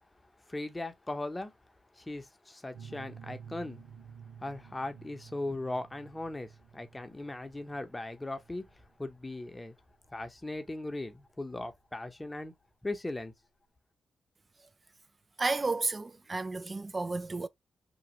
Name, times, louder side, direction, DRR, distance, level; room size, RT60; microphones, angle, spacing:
voice 1, 0.5-1.5 1.9-3.8 4.4-9.7 10.1-12.5 12.8-13.3, left 2 dB, 20° left, 0.7 m, -38 dB
sound 1, 2.7-12.1, right 7 dB, 85° right, 0.8 m, -52 dB
voice 2, 15.4-17.5, right 3 dB, 35° right, 0.3 m, -32 dB
3.0 x 2.3 x 2.9 m
supercardioid pair, 45°, 0 cm